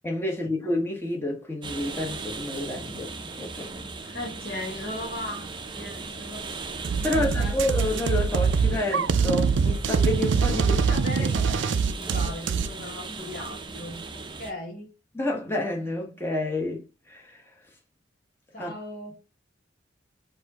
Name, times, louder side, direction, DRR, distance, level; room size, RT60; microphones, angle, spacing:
voice 1, 0.0-3.1 3.4-3.9 7.0-10.8 15.1-17.4 18.6-18.7, left 1 dB, 10° left, 1.2 m, -29 dB
sound 1, 1.6-14.5, right 4 dB, 25° right, 0.6 m, -38 dB
voice 2, 4.0-6.5 7.0-7.6 10.6-14.9 18.5-19.1, left 1 dB, 50° left, 1.8 m, -38 dB
sound 2, 6.8-12.7, right 5 dB, 70° right, 0.4 m, -23 dB
4.7 x 2.8 x 4.0 m
head